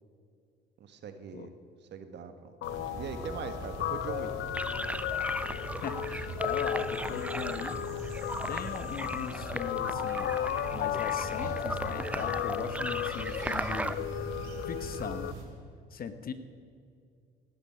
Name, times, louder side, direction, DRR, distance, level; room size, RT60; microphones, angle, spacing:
voice 1, 0.8-1.5 1.9-4.3, right 6 dB, 60° right, 8 dB, 1.4 m, -41 dB
Guitar, 2.6-15.3, left 12 dB, 65° left, 0.6 m, -35 dB
sound 1, 2.6-15.4, right 2 dB, 80° right, 2.8 m, -42 dB
sound 2, 4.5-13.9, right 1 dB, 5° right, 0.6 m, -38 dB
voice 2, 5.8-7.8 8.0-8.2 8.5-10.3 10.7-14.3 14.7-15.3 15.9-16.3, left 6 dB, 50° left, 10 dB, 1.2 m, -39 dB
17.0 x 10.5 x 5.8 m, 2.3 s
supercardioid pair, 80°, 20 cm